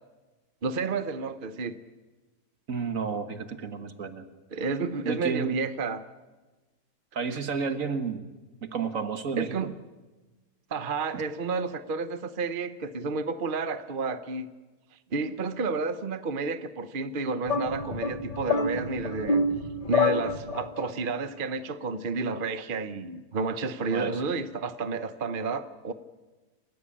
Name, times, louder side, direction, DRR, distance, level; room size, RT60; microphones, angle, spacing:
voice 1, 0.6-1.8 4.5-6.0 7.3-7.4 9.4-9.8 10.7-14.5 15.1-19.4 19.9-25.9, right 4 dB, 40° right, 11 dB, 0.9 m, -31 dB
voice 2, 2.7-4.3 5.1-5.6 7.2-8.3 8.6-9.7 23.9-24.3, right 5 dB, 55° right, 9 dB, 1.8 m, -31 dB
sound 1, 17.5-20.9, left 3 dB, 30° left, 0.7 m, -28 dB
27.5 x 15.5 x 8.6 m, 1.2 s
omnidirectional pair, 1.7 m